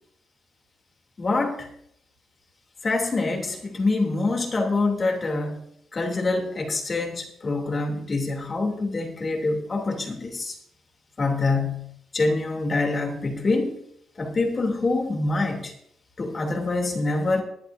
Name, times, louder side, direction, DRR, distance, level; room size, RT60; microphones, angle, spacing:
voice 1, 1.2-1.7 2.8-5.6 5.9-10.5 11.2-13.7 14.2-15.7 16.2-17.4, left 3 dB, 35° left, 2 dB, 3.0 m, -25 dB
20.5 x 10.5 x 2.7 m, 0.68 s
cardioid pair, 90°, 0 cm